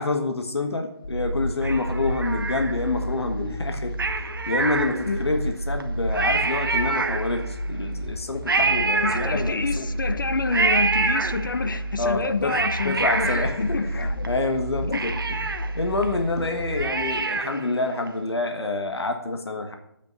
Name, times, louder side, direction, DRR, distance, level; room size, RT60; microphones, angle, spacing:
voice 1, 0.0-4.0 4.5-9.9 12.0-12.6 12.8-19.8, left 3 dB, 80° left, 5 dB, 1.5 m, -27 dB
sound 1, 1.0-17.0, equal, 35° left, 3.8 m, -31 dB
Cat, 1.6-3.1 3.9-5.3 5.8-5.9 6.1-7.6 8.5-9.8 10.5-11.8 12.2-14.3 14.6-14.7 14.9-17.7 18.1-18.2, right 4 dB, 55° right, 1.1 m, -26 dB
voice 2, 9.0-14.3 14.8-15.0, left 4 dB, 50° left, 12 dB, 0.8 m, -28 dB
9.1 x 8.4 x 5.3 m, 0.80 s
figure-of-eight pair, 175°, 13 cm